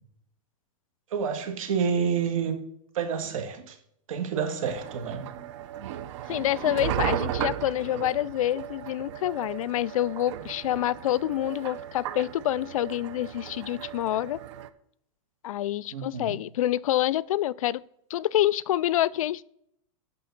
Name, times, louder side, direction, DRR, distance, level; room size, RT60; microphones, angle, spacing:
voice 1, 1.1-2.6 2.9-3.7 4.1-5.2 15.9-16.3, right 6 dB, 80° right, 1.7 m, -28 dB
sound 1, 4.6-14.7, right 10 dB, 60° right, 0.6 m, -35 dB
voice 2, 6.3-14.4 15.4-17.8 18.1-19.4, left 13 dB, 90° left, 0.4 m, -27 dB
11.5 x 3.9 x 5.8 m
supercardioid pair, 150°, 17 cm